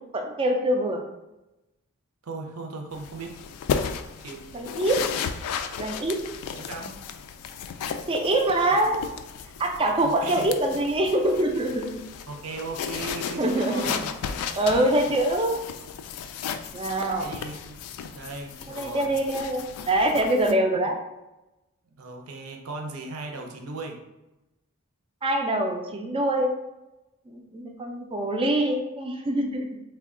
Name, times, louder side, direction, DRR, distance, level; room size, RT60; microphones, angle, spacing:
voice 1, 0.1-1.0 4.5-5.1 5.8-6.2 8.1-9.0 9.6-12.0 13.4-13.8 14.6-15.6 16.7-17.3 18.7-21.0 25.2-26.5 27.3-29.7, right 1 dB, 25° right, 2 dB, 0.4 m, -24 dB
voice 2, 2.2-3.3 4.2-4.4 6.5-7.0 8.7-8.9 10.0-10.5 12.3-14.1 14.7-15.2 17.2-17.8 18.1-19.1 20.8-20.9 22.0-24.0, right 3 dB, 75° right, 2 dB, 0.6 m, -37 dB
sound 1, 2.9-20.5, left 7 dB, 90° left, 0.3 m, -35 dB
3.3 x 2.2 x 3.6 m, 0.98 s
head